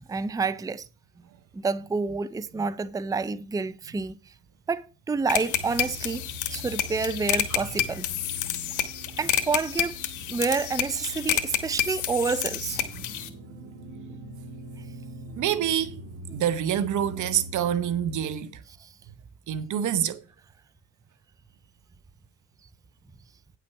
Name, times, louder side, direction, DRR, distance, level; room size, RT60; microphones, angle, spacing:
voice 1, 0.1-0.9 1.5-4.2 4.7-6.2 6.5-8.1 9.2-9.9 10.3-12.8 16.3-16.4 18.8-18.9, right 4 dB, 10° right, 0.5 m, -28 dB
sound 1, 5.3-13.3, left 11 dB, 80° left, 1.3 m, -29 dB
sound 2, 5.5-18.3, equal, 60° right, 2.6 m, -42 dB
voice 2, 15.4-16.0 16.3-18.6 19.5-20.2, right 10 dB, 75° right, 0.9 m, -26 dB
9.4 x 6.0 x 5.7 m
cardioid pair, 90°, 30 cm